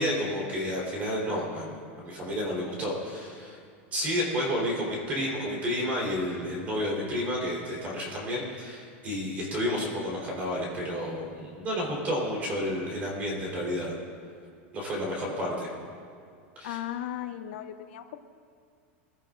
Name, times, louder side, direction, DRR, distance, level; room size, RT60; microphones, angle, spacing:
voice 1, 0.0-3.6 3.9-13.9 14.7-15.7 16.6-16.8, equal, 25° right, -3 dB, 3.9 m, -31 dB
voice 2, 16.6-18.2, left 11 dB, 60° left, 8 dB, 0.9 m, -36 dB
23.5 x 16.0 x 2.6 m, 2.3 s
supercardioid pair, 170°, 7 cm